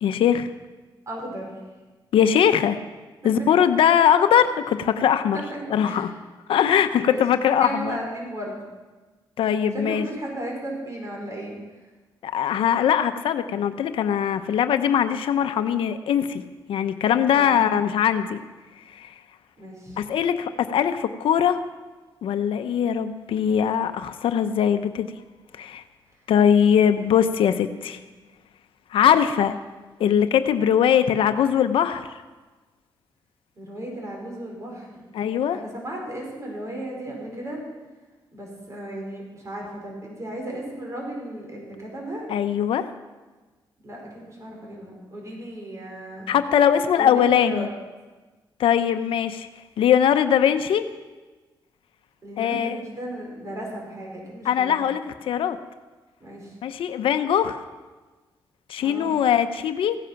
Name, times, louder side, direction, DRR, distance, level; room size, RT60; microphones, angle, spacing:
voice 1, 0.0-0.5 2.1-2.8 3.2-5.4 5.7-6.1 6.5-8.0 9.4-10.1 12.2-16.4 16.7-18.4 18.9-19.1 20.0-21.6 22.2-25.1 25.6-25.8 26.3-28.0 28.9-29.6 30.0-32.1 35.1-35.6 42.3-42.9 46.3-47.7 48.6-49.5 49.8-50.8 52.4-52.8 54.4-55.6 56.6-57.6 58.7-60.0, left 9 dB, 80° left, 9 dB, 0.7 m, -21 dB
voice 2, 1.1-1.6 3.2-3.5 5.3-6.0 7.1-8.6 9.7-11.5 17.3-17.5 19.6-20.0 33.6-35.1 35.5-37.6 38.3-42.3 43.8-46.3 47.0-47.7 52.2-54.8 56.2-56.5 58.8-59.2, right 1 dB, 35° right, -1 dB, 4.9 m, -35 dB
16.0 x 10.0 x 5.8 m, 1.3 s
cardioid pair, 100°, 9 cm